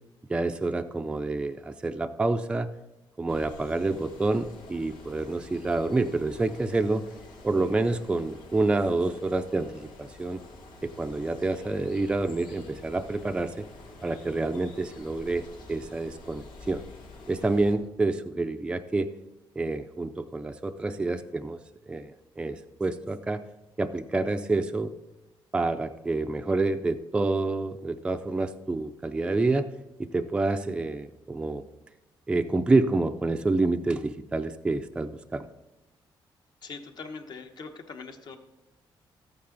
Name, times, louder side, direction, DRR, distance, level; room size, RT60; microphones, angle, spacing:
voice 1, 0.3-2.7 3.2-7.1 7.4-10.4 10.8-13.6 14.0-16.8 17.3-19.1 19.6-21.6 21.9-23.4 23.8-24.9 25.5-29.7 30.0-31.6 32.3-35.5, right 2 dB, 10° right, 7 dB, 0.4 m, -28 dB
sound 1, 3.3-17.8, left 2 dB, 75° left, 2.3 m, -48 dB
voice 2, 36.6-38.4, left 4 dB, 50° left, 6 dB, 1.1 m, -41 dB
13.0 x 8.7 x 3.9 m, 1.1 s
cardioid pair, 160°, 9 cm